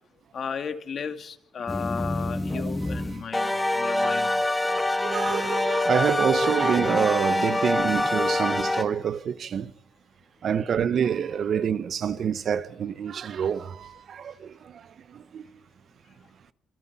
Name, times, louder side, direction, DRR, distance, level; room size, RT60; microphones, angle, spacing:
voice 1, 0.3-4.3 5.3-5.5 7.4-7.5 11.5-11.7, left 6 dB, 55° left, 2.4 m, -35 dB
sound 1, 1.7-8.8, left 2 dB, 15° left, 2.4 m, -25 dB
voice 2, 5.0-9.7 10.4-14.8 15.1-15.4, right 8 dB, 60° right, 1.1 m, -27 dB
27.0 x 25.0 x 4.4 m
cardioid pair, 90°, 0 cm